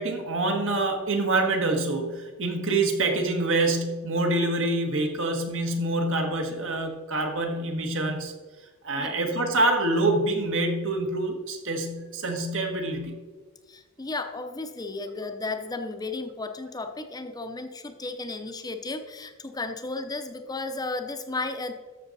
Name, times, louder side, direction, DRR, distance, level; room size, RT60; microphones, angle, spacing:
voice 1, 0.0-8.3 8.8-13.1, right 2 dB, 60° right, 3 dB, 1.6 m, -26 dB
voice 2, 13.7-21.7, left 3 dB, 20° left, 7 dB, 0.7 m, -34 dB
13.5 x 6.3 x 4.1 m, 1.3 s
head